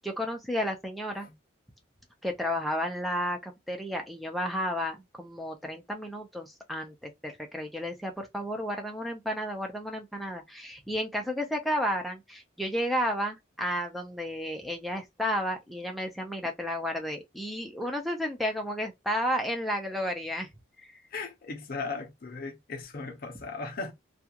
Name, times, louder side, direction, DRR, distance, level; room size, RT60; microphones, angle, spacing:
voice 1, 0.0-1.3 2.2-20.5, equal, ahead, 0.5 m, -32 dB
voice 2, 21.1-23.9, left 4 dB, 45° left, 0.6 m, -37 dB
2.4 x 2.3 x 2.8 m
head